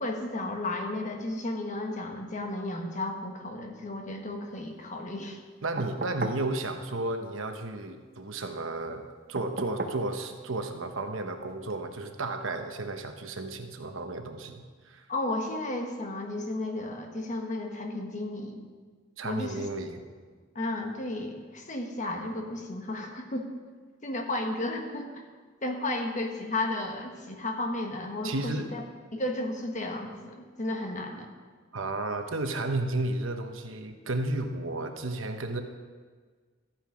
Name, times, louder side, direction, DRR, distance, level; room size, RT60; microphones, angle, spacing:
voice 1, 0.0-5.4 15.1-18.7 19.2-19.7 20.5-23.5 24.0-25.2 25.6-28.8 29.1-31.3, left 2 dB, 35° left, 3 dB, 1.4 m, -33 dB
voice 2, 5.6-15.1 19.2-20.0 28.2-28.7 31.7-35.6, right 2 dB, 75° right, 6 dB, 1.1 m, -33 dB
sound 1, 5.8-6.5 9.4-10.1 11.7-11.8, right 2 dB, 50° right, 0.9 m, -34 dB
13.5 x 8.9 x 5.1 m, 1.5 s
head